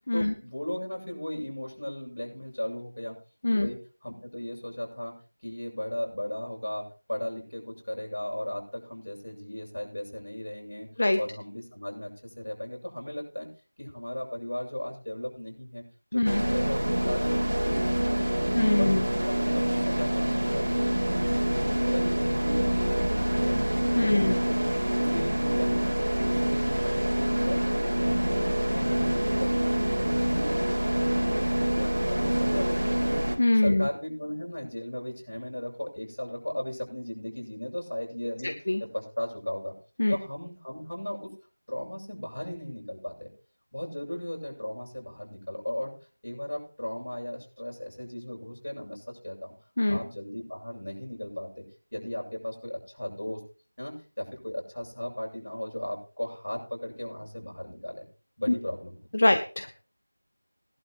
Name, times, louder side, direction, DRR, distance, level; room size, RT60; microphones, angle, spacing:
voice 1, 0.1-3.2 3.5-5.2 5.4-10.9 11.2-13.5 13.8-15.8 16.1-18.0 18.3-18.5 18.8-20.8 21.1-23.6 24.0-24.6 25.0-26.0 26.3-28.4 28.7-33.2 33.5-38.6 38.9-39.7 40.1-41.3 41.7-43.3 43.7-45.9 46.2-49.5 49.9-51.7 51.9-53.4 53.8-58.1 58.4-59.0 59.2-59.3, left 1 dB, 60° left, -1 dB, 7.6 m, -36 dB
sound 1, 16.2-33.4, right 1 dB, 70° right, 3.6 m, -26 dB
voice 2, 18.6-19.1 24.0-24.4 33.4-33.9 38.7-38.8 40.0-40.2 49.8-50.0 59.1-59.7, left 1 dB, 30° left, 7 dB, 0.7 m, -23 dB
20.0 x 11.5 x 3.1 m, 0.37 s
figure-of-eight pair, 180°, 0 cm